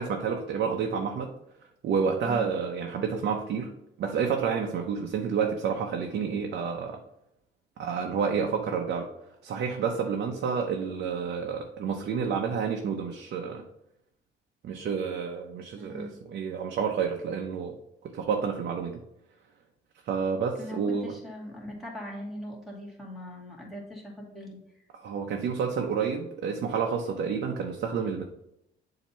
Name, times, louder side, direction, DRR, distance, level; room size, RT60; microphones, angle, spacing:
voice 1, 0.0-1.3 1.8-3.7 4.0-7.0 7.8-9.1 9.4-13.6 14.6-17.8 18.0-19.0 20.1-21.1 24.9-28.2, right 6 dB, 60° right, 2 dB, 0.7 m, -29 dB
voice 2, 15.8-16.1 20.6-24.8, left 1 dB, ahead, -5 dB, 2.3 m, -40 dB
7.3 x 2.9 x 5.5 m, 0.81 s
cardioid pair, 120°, 19 cm